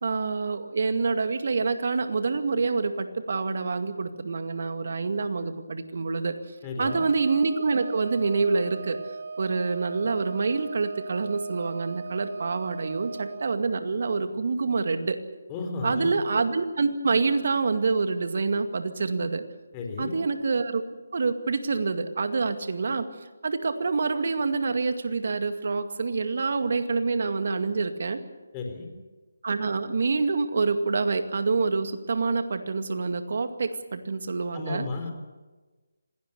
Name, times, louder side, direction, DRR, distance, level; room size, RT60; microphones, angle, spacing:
voice 1, 0.0-6.4 6.8-9.0 9.4-15.2 15.8-19.4 20.0-20.8 21.1-23.1 23.4-28.2 29.4-34.9, right 4 dB, 55° right, 8 dB, 2.1 m, -26 dB
voice 2, 6.6-7.0 15.5-16.1 19.7-20.1 28.5-28.9 34.5-35.1, left 3 dB, 20° left, 2 dB, 4.1 m, -33 dB
Wind instrument woodwind instrument, 6.8-13.6, right 4 dB, 75° right, 2.2 m, -39 dB
26.0 x 18.5 x 7.0 m, 1.2 s
figure-of-eight pair, 160°, 0 cm